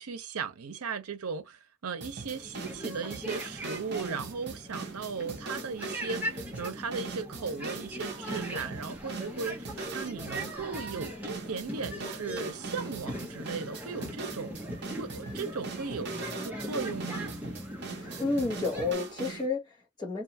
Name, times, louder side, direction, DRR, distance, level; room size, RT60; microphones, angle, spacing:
voice 1, 0.0-14.6 15.0-16.1 16.4-17.3, right 5 dB, 85° right, 0.7 m, -37 dB
sound 1, 2.0-19.5, right 4 dB, 50° right, 0.7 m, -41 dB
sound 2, 2.3-18.9, equal, 5° right, 0.7 m, -40 dB
voice 2, 17.8-20.2, left 3 dB, 20° left, 1.0 m, -31 dB
2.5 x 2.4 x 2.7 m
head